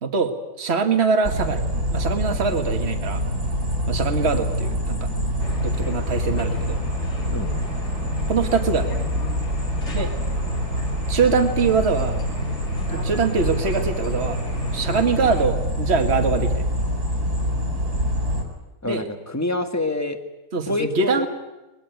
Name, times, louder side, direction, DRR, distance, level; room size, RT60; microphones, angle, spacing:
voice 1, 0.0-0.3 0.6-1.6 1.9-3.2 3.9-5.1 5.6-6.8 8.3-9.1 9.9-10.1 11.1-12.2 12.9-14.4 14.7-16.6 18.9-19.0 20.5-21.3, right 4 dB, 45° right, 6 dB, 2.0 m, -23 dB
sound 1, 1.2-18.4, equal, 85° right, 4.8 m, -25 dB
sound 2, 5.4-15.5, left 1 dB, 50° left, 3.4 m, -38 dB
voice 2, 18.8-20.2 20.7-21.3, left 2 dB, 10° left, 7 dB, 1.7 m, -26 dB
21.5 x 20.5 x 9.3 m, 1.0 s
omnidirectional pair, 1.6 m